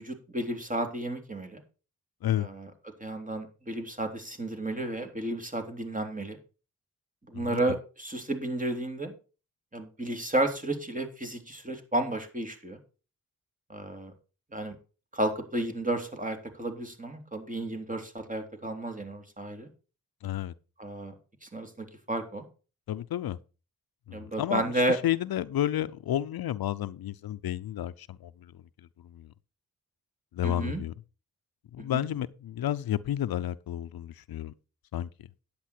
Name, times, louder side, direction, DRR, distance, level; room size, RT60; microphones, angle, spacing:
voice 1, 0.0-1.6 2.4-2.7 3.0-6.4 7.3-9.1 9.7-12.8 13.7-14.1 14.5-14.7 15.1-19.7 20.8-21.1 21.4-22.4 24.1-25.0 30.4-30.8 31.8-32.0, right 1 dB, 20° right, 3.3 m, -32 dB
voice 2, 7.3-7.8 20.2-20.5 22.9-23.4 24.1-28.5 29.0-29.3 30.3-30.9 31.7-34.5 34.9-35.1, left 12 dB, 85° left, 0.6 m, -31 dB
10.0 x 8.6 x 4.4 m
cardioid pair, 45°, 35 cm